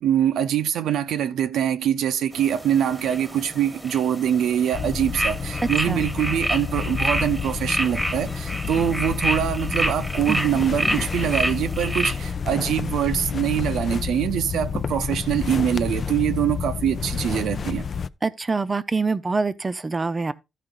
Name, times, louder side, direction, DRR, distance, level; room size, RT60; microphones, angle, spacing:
voice 1, 0.0-17.8, right 10 dB, 90° right, 0.6 m, -24 dB
sound 1, 2.3-12.3, equal, ahead, 1.3 m, -29 dB
sound 2, 4.7-18.1, left 6 dB, 45° left, 0.4 m, -29 dB
voice 2, 18.2-20.3, right 4 dB, 25° right, 0.6 m, -25 dB
14.5 x 5.0 x 3.7 m
cardioid pair, 115°, 0 cm